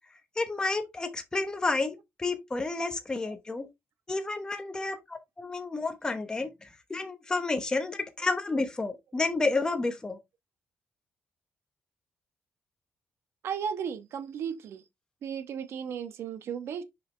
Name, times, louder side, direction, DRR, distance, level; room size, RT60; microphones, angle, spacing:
voice 1, 0.4-3.7 4.1-10.2, left 3 dB, 15° left, 1.0 m, -30 dB
voice 2, 13.4-14.8 15.2-16.8, right 7 dB, 75° right, 1.1 m, -35 dB
6.5 x 5.1 x 3.2 m
cardioid pair, 130°, 4 cm